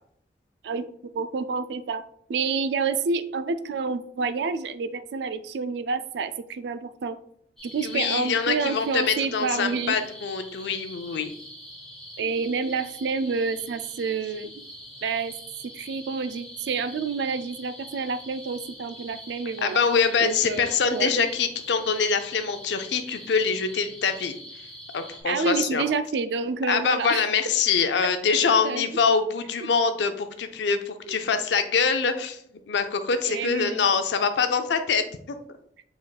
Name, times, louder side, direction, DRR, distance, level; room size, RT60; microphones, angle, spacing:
voice 1, 1.1-2.0 2.3-7.2 7.6-10.0 12.2-14.7 15.0-15.3 15.6-19.8 20.2-21.1 25.3-27.2 28.6-28.9 31.1-31.2 33.2-33.9, right 4 dB, 75° right, 12 dB, 0.3 m, -28 dB
sound 1, 7.6-25.2, equal, 5° left, 1.4 m, -44 dB
voice 2, 7.8-11.3 19.6-24.3 24.9-25.8 26.7-32.4 32.7-35.4, left 5 dB, 80° left, 8 dB, 0.4 m, -24 dB
5.1 x 4.1 x 2.3 m, 0.66 s
head